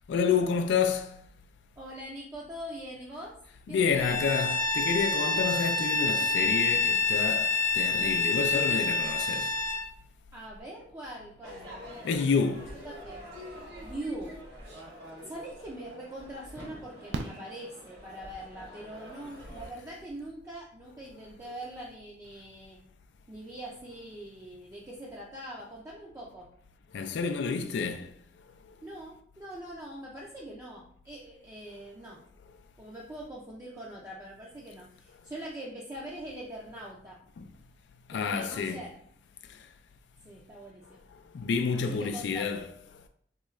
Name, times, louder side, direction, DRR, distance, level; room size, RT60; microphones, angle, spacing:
voice 1, 0.1-1.2 3.7-9.5 12.0-12.8 19.3-19.4 21.4-21.5 26.9-28.1 37.4-37.5 38.1-38.9 39.5-39.6 41.3-42.8, left 5 dB, 80° left, 0.3 m, -29 dB
voice 2, 1.8-3.3 3.7-4.2 10.3-11.7 12.8-13.3 13.8-14.4 15.2-22.8 23.3-26.5 28.8-32.2 32.8-37.2 38.1-38.9 40.2-41.0 41.7-42.6, right 1 dB, 15° right, 0.5 m, -43 dB
Bowed string instrument, 3.9-9.9, left 4 dB, 40° left, 0.7 m, -27 dB
Crowd / Fireworks, 11.4-19.7, equal, 65° right, 1.4 m, -46 dB
Fireworks, 15.4-15.5 17.1-18.4 20.2-20.3 20.5-20.6, right 3 dB, 90° right, 0.4 m, -39 dB
3.7 x 2.3 x 3.1 m
head